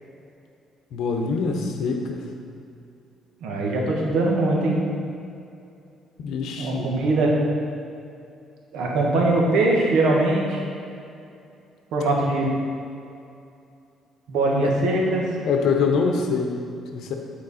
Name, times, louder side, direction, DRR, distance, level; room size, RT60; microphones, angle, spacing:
voice 1, 0.9-2.3 6.2-6.9 14.6-14.7 15.4-17.1, left 5 dB, 70° left, 3 dB, 0.9 m, -25 dB
voice 2, 3.4-4.8 6.6-7.3 8.7-10.6 11.9-12.5 14.3-15.2, right 2 dB, 85° right, -2 dB, 1.4 m, -21 dB
9.4 x 4.6 x 4.2 m, 2.5 s
cardioid pair, 135°, 0 cm